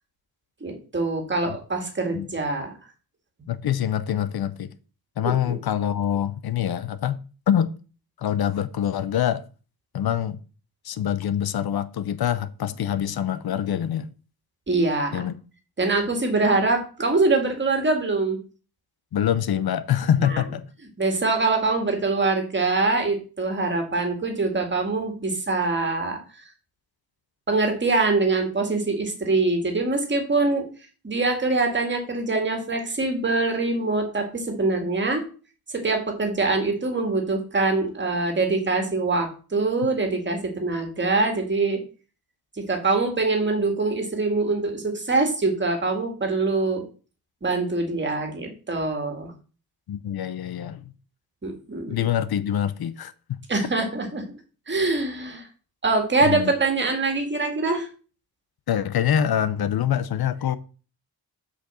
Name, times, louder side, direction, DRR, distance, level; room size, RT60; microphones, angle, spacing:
voice 1, 0.6-2.7 3.4-3.5 5.2-5.6 14.7-15.3 15.8-18.4 20.3-20.4 21.0-26.2 27.5-30.7 31.0-35.2 35.7-41.8 42.6-46.8 47.4-49.3 51.4-52.0 53.5-54.2 54.7-55.5 55.8-57.9, right 3 dB, 30° right, 2.0 m, -24 dB
voice 2, 3.5-4.7 5.2-7.2 7.5-7.7 8.2-9.4 9.9-10.4 10.8-14.1 15.1-15.3 19.1-20.7 49.9-50.8 51.9-53.1 56.2-56.5 58.7-60.6, left 10 dB, 75° left, 0.7 m, -25 dB
6.4 x 5.2 x 6.8 m
wide cardioid pair, 170°, 37 cm